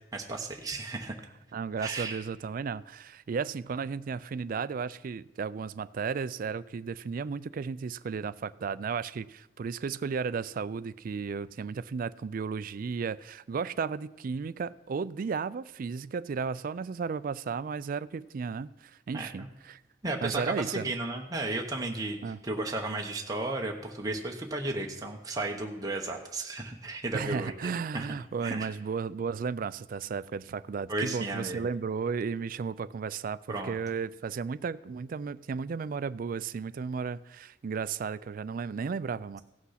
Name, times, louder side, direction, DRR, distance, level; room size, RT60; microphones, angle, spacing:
voice 1, 0.1-1.1 1.8-2.2 19.1-19.5 20.0-28.1 28.4-28.7 30.9-31.7 33.5-33.8, right 2 dB, 20° right, 1 dB, 0.9 m, -34 dB
voice 2, 1.5-19.8 20.2-20.9 22.2-22.4 27.1-39.4, right 5 dB, 45° right, 16 dB, 0.3 m, -34 dB
16.0 x 6.0 x 5.7 m, 0.99 s
head